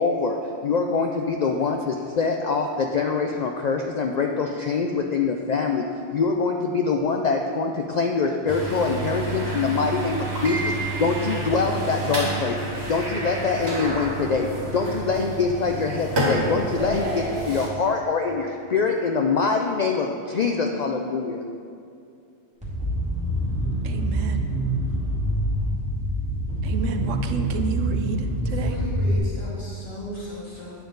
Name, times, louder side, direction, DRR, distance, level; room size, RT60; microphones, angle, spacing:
voice 1, 0.0-5.9 6.1-12.6 12.9-21.4, left 4 dB, 70° left, 3 dB, 0.4 m, -24 dB
sound 1, 8.5-17.7, right 2 dB, 60° right, 2.0 m, -29 dB
sound 2, 22.6-29.2, right 1 dB, 5° right, 1.9 m, -25 dB
voice 2, 23.8-24.5 26.6-28.8, right 4 dB, 90° right, 7 dB, 1.0 m, -30 dB
voice 3, 28.4-30.8, left 1 dB, 50° left, -7 dB, 2.4 m, -36 dB
9.0 x 6.9 x 3.9 m, 2.5 s
omnidirectional pair, 1.3 m